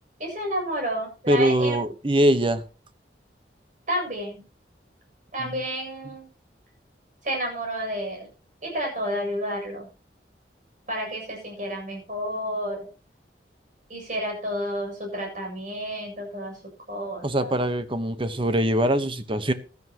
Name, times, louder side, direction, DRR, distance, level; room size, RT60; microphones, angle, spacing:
voice 1, 0.2-1.8 3.9-4.4 5.3-6.3 7.2-8.3 8.6-9.9 10.9-12.9 13.9-16.6 16.9-17.5, equal, 45° right, 1 dB, 7.5 m, -30 dB
voice 2, 1.3-2.6 5.4-5.6 17.2-19.5, right 1 dB, 30° right, 11 dB, 1.1 m, -23 dB
16.5 x 12.0 x 3.0 m, 0.35 s
head